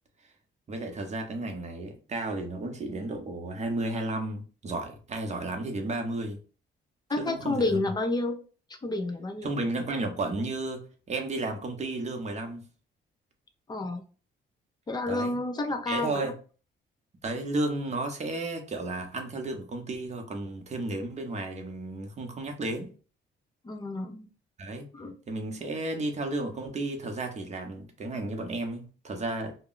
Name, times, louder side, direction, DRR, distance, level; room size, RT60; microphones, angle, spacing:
voice 1, 0.7-6.4 7.2-7.8 9.4-12.6 15.1-15.4 15.9-16.3 17.2-22.9 24.6-24.8 25.3-29.6, right 2 dB, 35° right, 0.7 m, -33 dB
voice 2, 7.1-8.4 8.7-9.5 13.7-14.0 14.9-16.3 23.6-24.3 24.9-25.2, left 2 dB, 20° left, 0.5 m, -30 dB
2.2 x 2.0 x 3.8 m
cardioid pair, 90°, 20 cm